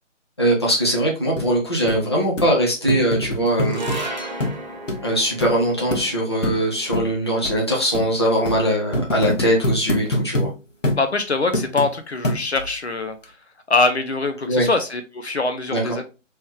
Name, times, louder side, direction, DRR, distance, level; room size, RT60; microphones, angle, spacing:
voice 1, 0.4-3.8 5.0-10.5 14.4-14.7 15.7-15.9, equal, 20° left, -4 dB, 0.6 m, -21 dB
sound 1, 1.4-1.5 1.9-2.0 2.4-2.5 2.9-4.0 4.4-4.6 4.9-5.0 5.4-5.5 5.9-6.0 6.4-6.6 6.9-7.1 7.4-7.6 7.9-8.1 8.5-8.6 8.9-10.5 10.8-11.0 11.5-11.9 12.2-12.7 13.2-13.3, left 1 dB, 75° left, 1.1 m, -24 dB
sound 2, 3.6-10.1, right 2 dB, 35° right, 0.6 m, -36 dB
voice 2, 11.0-13.4 13.7-16.0, left 3 dB, 60° left, 8 dB, 0.6 m, -23 dB
3.4 x 3.1 x 3.0 m, 0.30 s
figure-of-eight pair, 155°, 38 cm